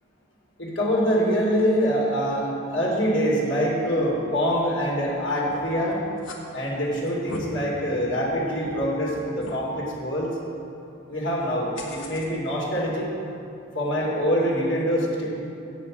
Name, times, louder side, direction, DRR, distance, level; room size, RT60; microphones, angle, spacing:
voice 1, 0.6-6.0 6.5-10.3 11.1-13.1 13.7-15.3, equal, 65° left, -5 dB, 2.3 m, -24 dB
sound 1, 5.5-5.8 6.2-6.4 7.0-7.4 8.0-8.1 8.6-8.7 9.4-9.6 11.8-12.3, left 3 dB, 85° left, 1.2 m, -38 dB
7.8 x 6.1 x 7.1 m, 2.7 s
head